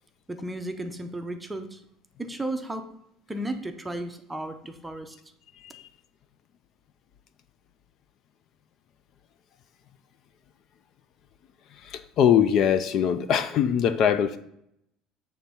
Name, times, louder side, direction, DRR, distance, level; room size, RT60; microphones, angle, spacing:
voice 1, 0.3-1.8 2.2-2.9 3.3-5.2, right 1 dB, 5° right, 6 dB, 0.6 m, -34 dB
voice 2, 11.8-14.4, left 8 dB, 45° left, 12 dB, 0.4 m, -22 dB
7.7 x 3.4 x 5.5 m, 0.76 s
cardioid pair, 155°, 0 cm